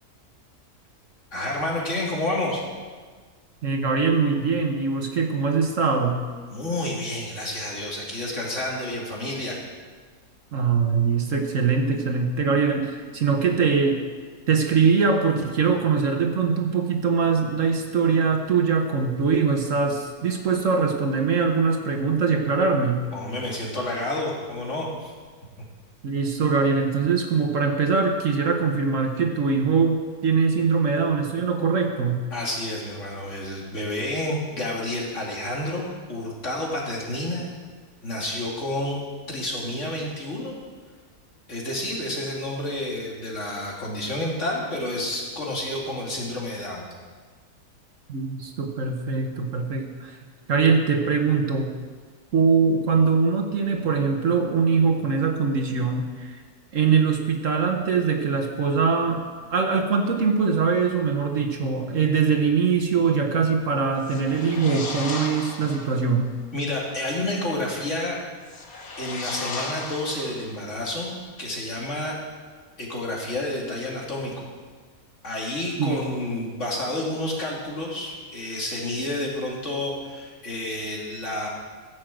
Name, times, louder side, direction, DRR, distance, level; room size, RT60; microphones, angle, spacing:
voice 1, 1.3-2.6 6.5-9.6 23.1-25.1 32.3-37.5 38.0-39.0 39.3-40.5 41.5-46.9 66.5-68.2 69.0-72.2 72.8-74.4 75.2-81.5, left 1 dB, 50° left, -3 dB, 2.8 m, -30 dB
voice 2, 3.6-6.2 10.5-14.0 14.5-23.1 26.0-32.2 48.1-50.2 50.5-51.7 52.3-56.4 56.7-66.3 75.8-76.0, right 5 dB, 55° right, 4 dB, 1.3 m, -22 dB
sound 1, 64.0-66.0 68.4-70.7, left 3 dB, 65° left, 1.8 m, -35 dB
15.0 x 6.3 x 7.6 m, 1.5 s
omnidirectional pair, 1.7 m